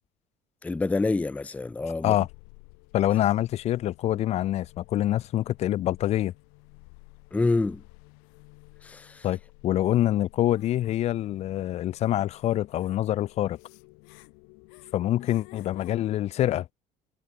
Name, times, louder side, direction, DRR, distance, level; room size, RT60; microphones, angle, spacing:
voice 1, 0.6-2.2 7.3-7.8 8.8-9.3, left 3 dB, 10° left, 0.6 m, -27 dB
sound 1, 2.1-16.0, left 40 dB or more, 90° left, 4.4 m, -53 dB
voice 2, 2.9-6.3 9.2-13.6 14.9-16.7, left 13 dB, 50° left, 0.9 m, -25 dB
cardioid pair, 130°, 14 cm